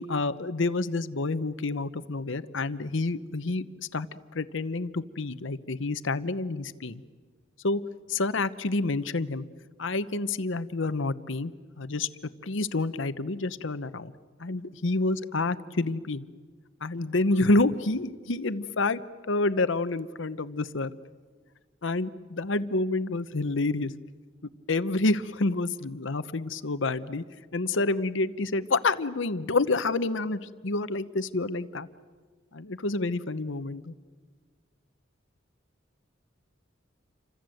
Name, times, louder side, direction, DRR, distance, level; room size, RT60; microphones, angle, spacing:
voice 1, 0.0-3.6 3.9-4.1 4.3-7.0 7.6-7.8 8.1-9.4 9.8-11.5 11.8-12.1 12.4-14.1 14.4-16.3 16.8-20.9 21.8-23.9 24.7-27.2 27.5-31.9 32.5-33.9, left 2 dB, 65° left, 12 dB, 1.0 m, -28 dB
29.5 x 25.5 x 7.9 m, 1.5 s
head